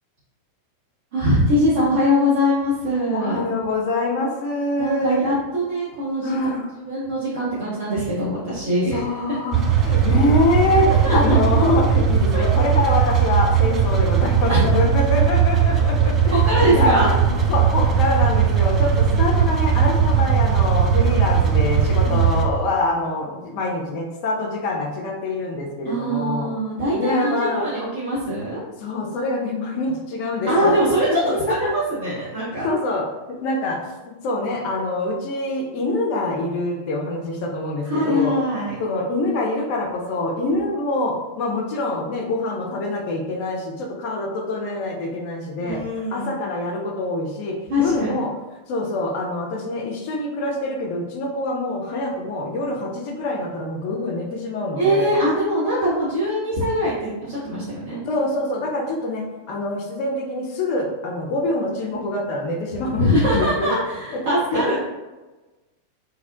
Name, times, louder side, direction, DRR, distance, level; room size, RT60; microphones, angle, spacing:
voice 1, 1.1-3.4 4.8-6.3 6.8-9.0 10.7-11.3 12.3-12.5 14.5-14.6 16.3-17.1 22.0-22.2 25.8-28.6 30.5-32.7 37.8-38.7 40.4-40.6 45.6-46.4 47.7-48.1 54.8-58.0 63.0-64.8, equal, 55° right, -10 dB, 0.7 m, -22 dB
voice 2, 3.1-5.2 6.2-6.7 8.9-26.5 27.0-27.6 28.8-30.7 31.0-31.2 31.5-31.7 32.6-33.8 34.1-38.3 38.8-45.8 46.1-48.3 48.7-55.1 58.0-63.7 64.1-64.8, left 2 dB, 45° left, 0 dB, 0.4 m, -25 dB
Vintage Cadillac Muffler Turn on Idle Off Rattle, 9.5-22.5, right 7 dB, 30° right, 0.3 m, -18 dB
2.6 x 2.1 x 2.5 m, 1.1 s
figure-of-eight pair, 90°, 0 cm